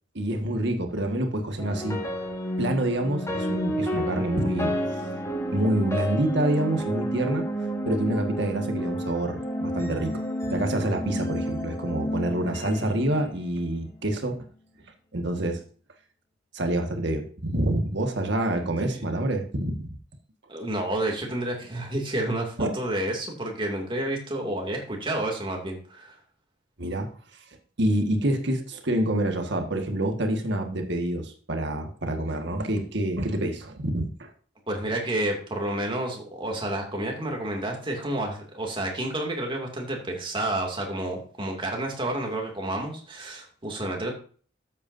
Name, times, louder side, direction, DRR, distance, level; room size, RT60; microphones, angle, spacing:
voice 1, 0.1-2.0 2.6-4.7 5.5-7.5 7.8-10.2 10.5-14.4 15.1-15.6 16.5-19.9 22.6-22.7 26.8-27.1 27.8-34.3, right 1 dB, 60° right, 5 dB, 1.7 m, -27 dB
sound 1, 1.6-13.9, equal, 15° left, 1.6 m, -30 dB
voice 2, 18.6-19.1 20.5-26.2 34.7-44.1, right 1 dB, 25° right, 1 dB, 2.5 m, -30 dB
12.5 x 8.5 x 2.7 m, 0.43 s
head